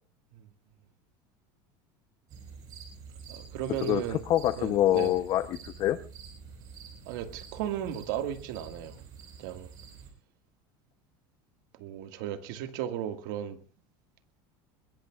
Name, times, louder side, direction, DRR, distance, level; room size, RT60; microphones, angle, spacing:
sound 1, 2.3-10.1, right 5 dB, 35° right, 4.7 m, -47 dB
voice 1, 3.3-4.2 4.6-5.2 7.1-9.0 9.4-9.7 11.7-13.6, right 10 dB, 65° right, 1.8 m, -35 dB
voice 2, 3.8-6.0, left 13 dB, 35° left, 0.7 m, -26 dB
22.0 x 21.5 x 2.4 m
cardioid pair, 175°, 11 cm